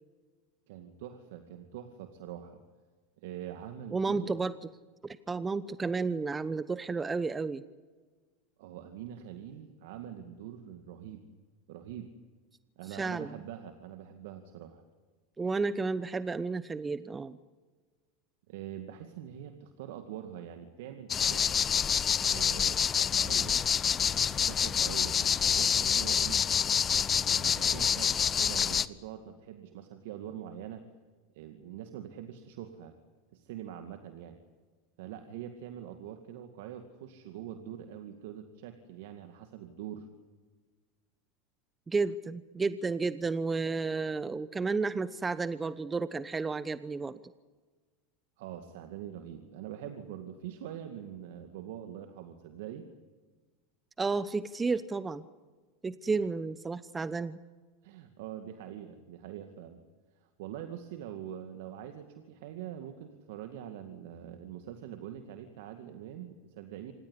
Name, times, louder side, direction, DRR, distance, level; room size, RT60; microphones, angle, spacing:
voice 1, 0.7-2.6 3.2-4.4 8.6-11.2 11.7-12.1 12.8-14.8 18.5-21.5 22.2-23.6 24.0-26.4 26.9-30.9 31.3-33.0 33.3-34.4 35.0-40.1 48.4-52.9 57.8-59.8 60.2-66.9, right 10 dB, 70° right, 7 dB, 2.1 m, -44 dB
voice 2, 3.9-4.5 5.0-7.6 12.9-13.3 15.4-17.4 41.9-47.2 54.0-55.2 55.8-57.4, right 4 dB, 15° right, 15 dB, 0.9 m, -32 dB
sound 1, 21.1-28.9, left 7 dB, 30° left, 0.9 m, -27 dB
26.5 x 19.0 x 9.9 m, 1.4 s
hypercardioid pair, 100°, 0 cm